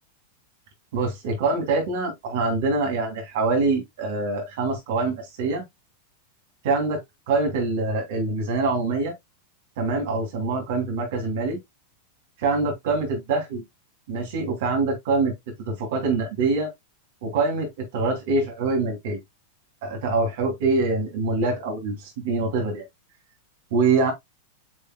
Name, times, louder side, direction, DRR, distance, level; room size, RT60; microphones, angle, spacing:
voice 1, 0.9-5.6 6.6-7.0 7.3-9.1 9.8-11.6 12.4-13.6 14.1-15.3 15.7-16.7 17.2-19.2 19.8-22.8 23.7-24.1, right 3 dB, 55° right, 3.0 m, -24 dB
8.3 x 5.4 x 2.2 m
figure-of-eight pair, 90°, 0 cm